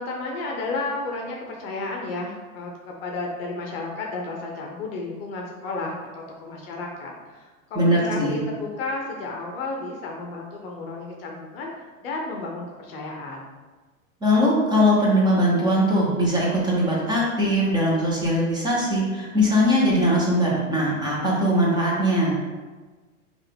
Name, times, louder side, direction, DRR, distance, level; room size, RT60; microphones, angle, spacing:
voice 1, 0.0-13.4, left 3 dB, 45° left, 0 dB, 0.8 m, -32 dB
voice 2, 7.7-8.4 14.2-22.4, equal, 10° right, -5 dB, 1.0 m, -21 dB
5.5 x 2.5 x 3.5 m, 1.4 s
figure-of-eight pair, 100°, 42 cm